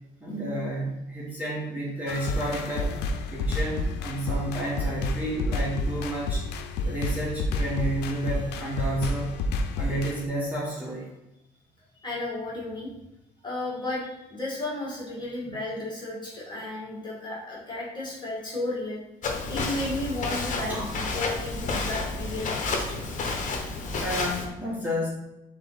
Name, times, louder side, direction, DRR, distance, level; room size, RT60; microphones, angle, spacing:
voice 1, 0.2-3.0 3.3-6.4 6.8-9.3 9.7-11.1 20.7-20.9 24.0-25.1, right 1 dB, 10° right, -6 dB, 1.4 m, -31 dB
sound 1, 2.1-10.2, left 2 dB, 80° left, 0.5 m, -30 dB
voice 2, 12.0-12.9 13.4-19.0 19.5-23.0, left 2 dB, 25° left, -4 dB, 1.6 m, -33 dB
Walk footsteps, 19.2-24.5, left 3 dB, 50° left, 0.9 m, -30 dB
3.8 x 3.2 x 4.0 m, 0.92 s
cardioid pair, 110°, 17 cm